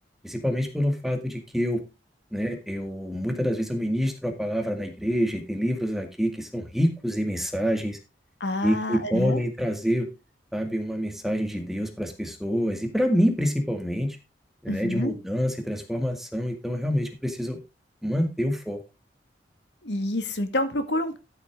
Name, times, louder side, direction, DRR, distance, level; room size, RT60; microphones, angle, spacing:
voice 1, 0.2-1.8 2.3-8.0 8.6-10.1 10.5-14.2 14.6-17.6 18.0-18.8, equal, ahead, 4 dB, 2.0 m, -27 dB
voice 2, 8.4-9.4 14.7-15.2 19.8-21.2, left 1 dB, 70° left, 9 dB, 1.8 m, -28 dB
13.0 x 8.0 x 3.7 m, 0.26 s
head